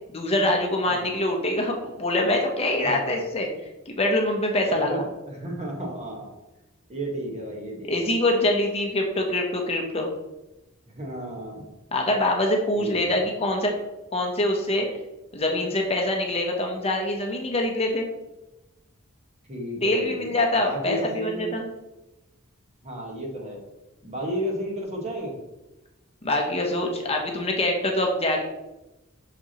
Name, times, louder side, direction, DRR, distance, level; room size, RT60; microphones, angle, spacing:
voice 1, 0.1-3.5 4.0-5.0 7.8-10.1 11.9-13.7 14.1-14.9 15.3-18.1 19.8-21.6 26.2-28.4, left 1 dB, 30° left, 2 dB, 0.8 m, -24 dB
voice 2, 0.9-1.2 2.8-3.2 4.7-6.3 6.9-8.1 10.9-11.6 12.8-13.2 19.5-21.6 22.8-23.6 24.0-25.4, equal, 30° right, 0 dB, 1.3 m, -33 dB
6.0 x 5.6 x 2.9 m, 0.99 s
head